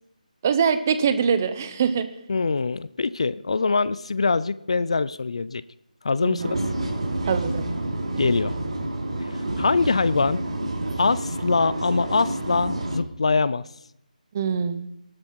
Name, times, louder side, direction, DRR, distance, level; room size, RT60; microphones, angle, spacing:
voice 1, 0.4-2.1 6.2-6.6 7.3-7.7 14.3-14.8, right 6 dB, 20° right, 11 dB, 0.8 m, -23 dB
voice 2, 2.3-5.6 6.0-6.6 8.2-8.6 9.3-10.4 11.0-13.6, left 4 dB, 45° left, 18 dB, 0.5 m, -23 dB
sound 1, 6.4-13.0, right 1 dB, 45° right, 4.4 m, -28 dB
17.0 x 13.0 x 4.6 m, 0.82 s
figure-of-eight pair, 175°, 5 cm